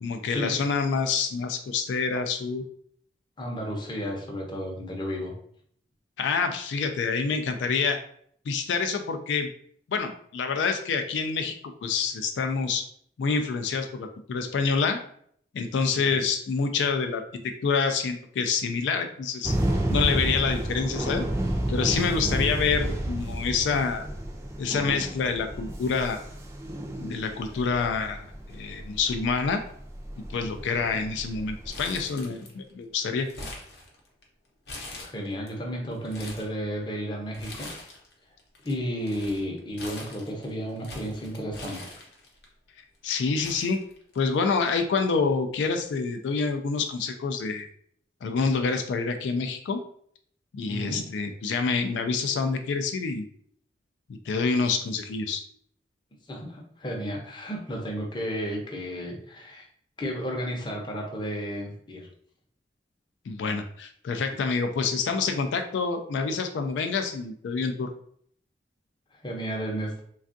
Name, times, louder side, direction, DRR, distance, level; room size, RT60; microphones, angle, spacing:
voice 1, 0.0-2.6 6.2-8.0 8.5-9.5 9.9-11.6 11.8-12.8 13.2-15.0 15.5-19.5 19.9-21.2 21.7-24.1 24.6-26.2 27.0-29.6 30.3-33.3 43.0-43.8 44.2-47.7 48.2-49.8 50.5-53.2 54.1-55.4 63.3-67.9, left 5 dB, 90° left, 6 dB, 0.3 m, -27 dB
voice 2, 3.4-5.3 15.9-16.2 22.2-22.4 35.0-37.7 38.6-41.9 50.6-51.0 56.3-59.7 60.0-62.1 69.1-70.0, equal, 25° left, 0 dB, 0.6 m, -33 dB
sound 1, 19.4-32.0, right 1 dB, 15° right, 0.4 m, -31 dB
Crumpling crinkling, 31.7-32.7 33.0-34.2 34.6-35.5 35.9-36.5 37.3-38.1 38.4-42.4 43.0-43.1 43.4-44.4 44.7-44.8 45.8-46.1, left 2 dB, 65° left, 0.7 m, -43 dB
3.3 x 2.3 x 2.5 m, 0.63 s
head